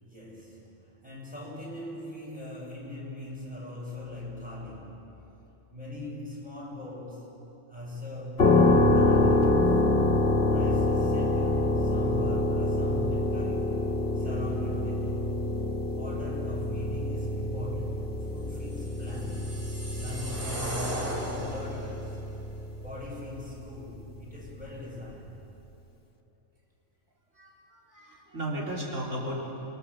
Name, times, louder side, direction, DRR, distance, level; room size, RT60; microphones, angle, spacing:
voice 1, 0.0-5.1 5.7-9.8 10.5-15.2 15.9-19.6 19.9-22.2 22.8-25.4, left 1 dB, 5° right, -4 dB, 6.9 m, -40 dB
sound 1, 8.4-23.1, left 2 dB, 55° left, 1.9 m, -26 dB
sound 2, 18.8-22.0, right 1 dB, 40° right, 3.8 m, -37 dB
voice 2, 27.4-29.6, right 1 dB, 70° right, -4 dB, 3.7 m, -35 dB
29.0 x 22.5 x 7.1 m, 3.0 s
omnidirectional pair, 1.4 m